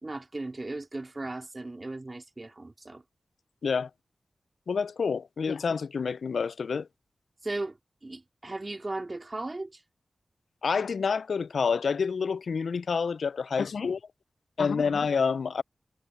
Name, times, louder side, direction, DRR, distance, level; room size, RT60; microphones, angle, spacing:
voice 1, 0.0-3.0 7.4-7.8 8.0-9.8, right 2 dB, 40° right, 2.8 m, -36 dB
voice 2, 4.7-6.9 10.6-14.0 14.6-15.6, left 5 dB, 80° left, 0.3 m, -28 dB
cardioid pair, 45°, 0 cm